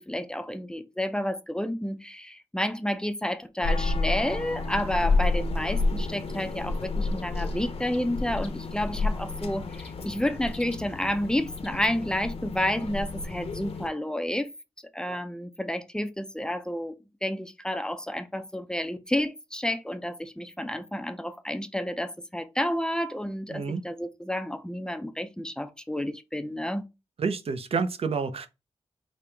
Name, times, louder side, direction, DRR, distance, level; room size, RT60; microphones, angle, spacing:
voice 1, 0.0-14.5 14.9-17.0 17.2-26.9, left 1 dB, 5° left, 0.5 m, -30 dB
sound 1, 3.6-13.9, left 3 dB, 60° left, 0.9 m, -30 dB
voice 2, 23.5-23.8 27.2-28.5, right 5 dB, 60° right, 0.6 m, -29 dB
5.2 x 2.8 x 3.3 m
wide cardioid pair, 135°, 11 cm